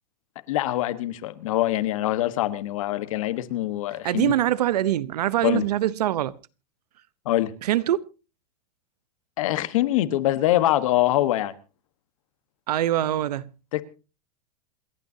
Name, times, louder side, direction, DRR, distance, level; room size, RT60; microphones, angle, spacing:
voice 1, 0.5-4.3 5.4-5.6 7.2-7.5 9.4-11.5 13.7-13.8, left 14 dB, 55° left, 1.3 m, -24 dB
voice 2, 4.0-6.4 7.6-8.0 12.7-13.5, right 13 dB, 80° right, 0.9 m, -23 dB
28.0 x 11.5 x 2.8 m
supercardioid pair, 170°, 20 cm